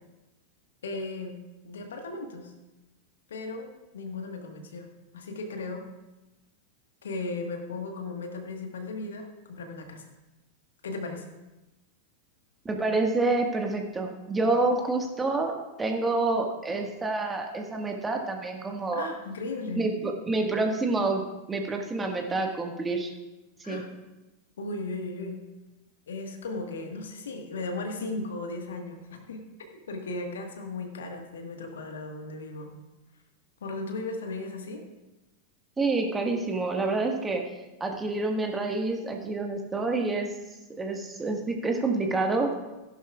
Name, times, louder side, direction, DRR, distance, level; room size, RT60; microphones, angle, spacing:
voice 1, 0.8-1.4 1.6-2.5 3.3-4.9 5.1-5.9 7.0-10.1 10.8-11.3 18.9-19.8 23.6-23.9 24.6-25.4 26.1-32.7 33.6-34.8, left 3 dB, 65° left, 4 dB, 1.5 m, -36 dB
voice 2, 12.6-19.1 19.7-23.1 23.7-23.8 35.8-37.4 37.8-40.3 40.8-42.5, right 3 dB, 15° right, 2 dB, 1.6 m, -28 dB
15.5 x 11.0 x 2.4 m, 1.1 s
figure-of-eight pair, 90°, 0 cm